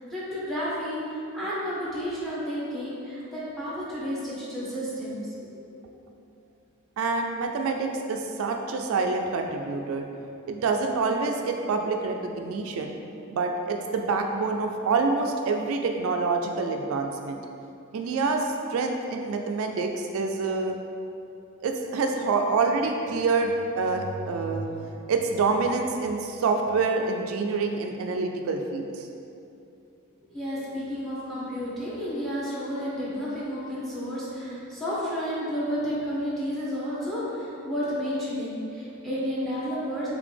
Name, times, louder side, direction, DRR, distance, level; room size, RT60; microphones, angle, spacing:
voice 1, 0.1-5.2 5.8-5.9 30.3-40.1, equal, ahead, -9 dB, 1.0 m, -31 dB
voice 2, 7.0-10.1 10.5-13.0 13.3-17.4 17.9-20.8 21.6-29.1, right 4 dB, 75° right, 3 dB, 0.3 m, -27 dB
4.0 x 3.3 x 3.3 m, 2.7 s
head